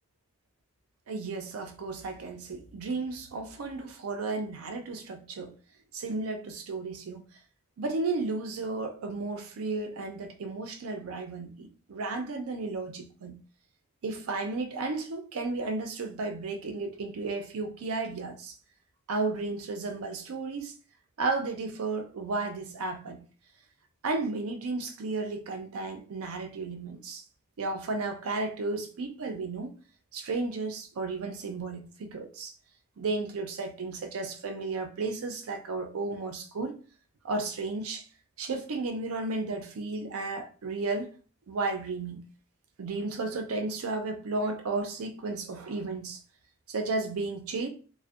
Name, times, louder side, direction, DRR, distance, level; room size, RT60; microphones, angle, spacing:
voice 1, 1.1-5.5 5.9-7.2 7.8-13.4 14.0-18.5 19.1-20.7 21.2-23.3 24.0-27.2 27.6-29.7 30.1-32.5 33.0-36.8 37.2-38.0 38.4-41.1 41.5-42.2 42.8-46.2 46.7-47.7, right 3 dB, 90° right, 0.5 m, -33 dB
2.5 x 2.1 x 2.3 m
head